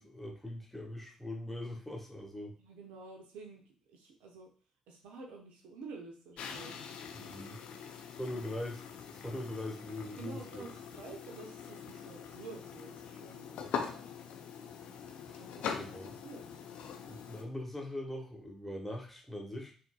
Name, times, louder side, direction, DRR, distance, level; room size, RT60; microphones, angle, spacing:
voice 1, 0.0-2.6 7.1-7.6 8.1-8.8 9.1-10.6 13.6-13.8 15.3-16.0 17.1-19.7, left 1 dB, 5° left, 0 dB, 1.2 m, -41 dB
voice 2, 2.6-4.5 4.9-6.8 8.2-8.4 10.2-13.7 15.3-16.5, right 4 dB, 70° right, 2 dB, 0.7 m, -50 dB
sound 1, 6.4-17.4, left 7 dB, 60° left, 0.5 m, -43 dB
5.8 x 2.7 x 2.2 m, 0.41 s
figure-of-eight pair, 40°, 2 cm